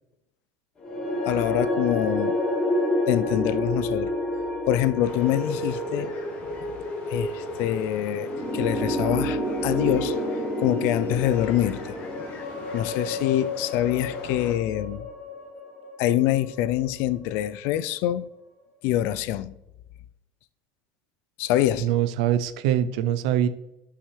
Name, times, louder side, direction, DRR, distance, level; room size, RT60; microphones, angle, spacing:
sound 1, 0.8-17.1, left 1 dB, 20° left, 2.8 m, -29 dB
voice 1, 1.3-2.4 3.1-4.1 4.7-6.1 7.1-10.2 10.6-12.0 12.7-15.1 16.0-18.3 18.8-19.5 21.4-21.9, left 13 dB, 65° left, 0.4 m, -25 dB
sound 2, 5.0-14.6, left 4 dB, 45° left, 1.4 m, -43 dB
voice 2, 21.8-23.5, right 11 dB, 90° right, 0.6 m, -23 dB
11.0 x 5.6 x 3.3 m
cardioid pair, 150°, 4 cm